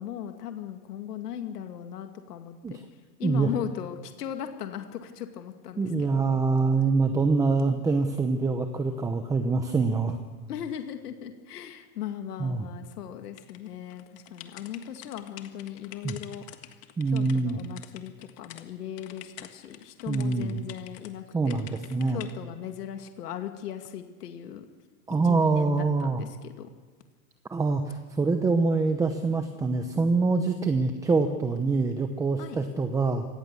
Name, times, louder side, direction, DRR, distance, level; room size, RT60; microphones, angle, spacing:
voice 1, 0.0-2.8 3.2-6.1 10.5-16.4 17.1-21.6 22.1-24.7 25.2-26.7 32.4-32.6, left 9 dB, 80° left, 6 dB, 2.2 m, -38 dB
voice 2, 5.8-10.2 12.4-12.7 16.0-16.2 17.0-17.6 20.1-20.6 21.3-22.2 25.1-26.2 27.5-33.2, right 4 dB, 5° right, 7 dB, 0.8 m, -25 dB
sound 1, 13.4-18.6 19.0-21.1 21.5-22.3, left 14 dB, 30° left, 1.6 m, -47 dB
24.5 x 18.5 x 6.9 m, 1.4 s
supercardioid pair, 150°, 46 cm